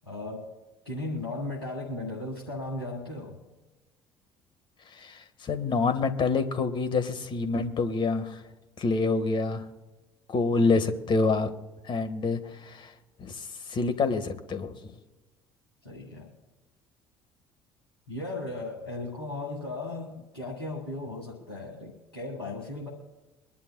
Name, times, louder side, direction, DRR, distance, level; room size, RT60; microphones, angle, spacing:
voice 1, 0.0-0.5 0.8-3.4 15.8-16.3 18.1-22.9, left 2 dB, 85° left, -3 dB, 1.8 m, -36 dB
voice 2, 4.9-8.4 8.8-9.7 10.3-11.5 11.8-12.9 13.2-14.7, left 3 dB, 40° left, 9 dB, 1.6 m, -27 dB
24.0 x 11.5 x 2.3 m, 1.2 s
figure-of-eight pair, 55°, 13 cm